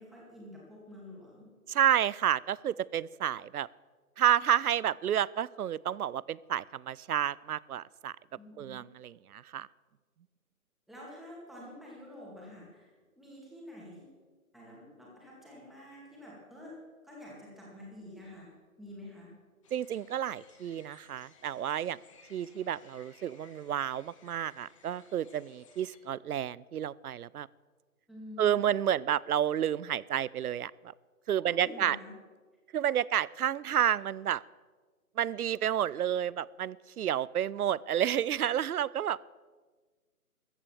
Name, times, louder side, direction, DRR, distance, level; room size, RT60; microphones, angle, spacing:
voice 1, 0.0-1.5 8.3-8.8 10.9-14.2 14.5-16.8 17.0-19.3 28.1-28.7 31.4-32.1, left 1 dB, ahead, -5 dB, 2.1 m, -48 dB
voice 2, 1.7-3.7 4.2-8.1 8.6-9.7 19.7-22.0 22.3-27.5 28.4-30.9 31.3-32.0 32.7-34.4 35.2-39.2, right 10 dB, 80° right, 23 dB, 0.5 m, -30 dB
sound 1, 19.6-26.0, left 6 dB, 20° left, 1.1 m, -61 dB
14.5 x 8.6 x 7.2 m, 1.4 s
hypercardioid pair, 155°, 44 cm